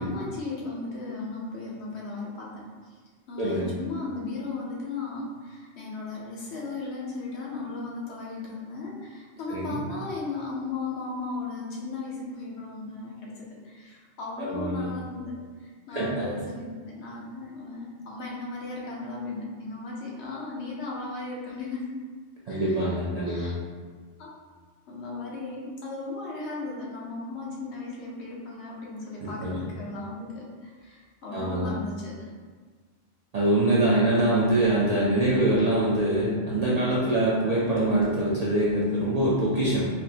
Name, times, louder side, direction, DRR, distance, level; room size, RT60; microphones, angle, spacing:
voice 1, 0.0-2.6 3.3-15.3 15.6-21.8 22.5-22.9 23.3-23.5 24.2-24.3 24.9-32.3, left 3 dB, 75° left, -4 dB, 1.0 m, -36 dB
voice 2, 3.4-3.7 9.5-9.8 14.4-14.9 15.9-16.3 22.5-23.6 29.2-29.6 31.3-31.8 33.3-39.9, right 1 dB, 60° right, -6 dB, 0.4 m, -24 dB
4.1 x 2.0 x 2.7 m, 1.5 s
omnidirectional pair, 1.1 m